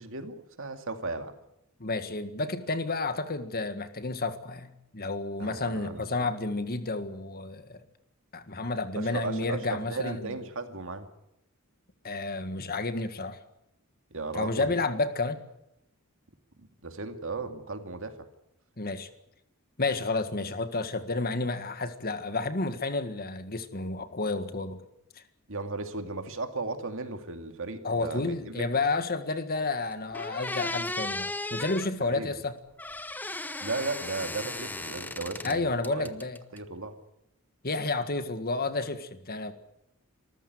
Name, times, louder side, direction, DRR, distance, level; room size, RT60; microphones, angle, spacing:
voice 1, 0.0-1.3 5.4-6.3 9.0-11.1 14.1-14.8 16.8-18.3 25.5-28.7 32.0-32.4 33.6-36.1 36.5-37.0, right 3 dB, 60° right, 7 dB, 2.3 m, -36 dB
voice 2, 1.8-7.8 8.3-10.4 12.0-13.4 14.3-15.4 18.8-19.1 19.8-24.8 25.1-25.2 27.8-32.5 35.4-36.4 37.6-39.5, left 3 dB, 45° left, 10 dB, 1.8 m, -31 dB
sound 1, 29.7-29.8 30.1-31.9 32.8-35.6 35.8-36.6, left 2 dB, 10° left, 0.8 m, -35 dB
26.0 x 14.5 x 9.6 m, 0.81 s
head